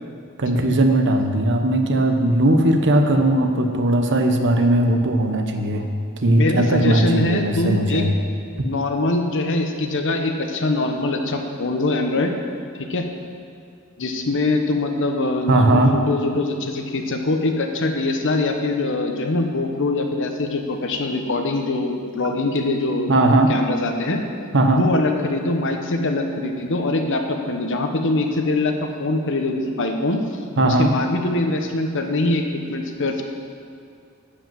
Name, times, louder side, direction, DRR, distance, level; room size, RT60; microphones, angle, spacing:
voice 1, 0.4-5.9 6.2-8.1 15.5-15.9 23.1-23.5 24.5-24.8 30.6-30.9, right 1 dB, 55° right, 5 dB, 0.9 m, -18 dB
voice 2, 6.4-8.1 8.6-12.3 12.8-13.1 14.0-23.1 23.5-24.2 24.7-28.7 29.0-30.2 30.6-33.2, left 2 dB, 60° left, 4 dB, 1.0 m, -23 dB
11.0 x 5.4 x 7.4 m, 2.4 s
head